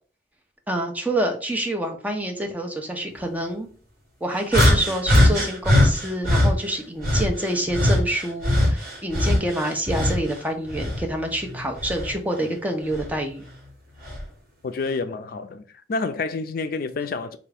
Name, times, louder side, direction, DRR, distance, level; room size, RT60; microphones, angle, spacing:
voice 1, 0.7-3.7 4.2-13.5, right 1 dB, 10° right, 0.6 m, -27 dB
sound 1, 4.5-6.5 7.0-10.3 10.7-12.2 12.9-13.1 14.0-14.2, left 1 dB, 55° right, 1.4 m, -20 dB
voice 2, 14.6-15.6 15.9-17.4, left 4 dB, 55° left, 0.4 m, -28 dB
3.5 x 2.4 x 3.4 m
head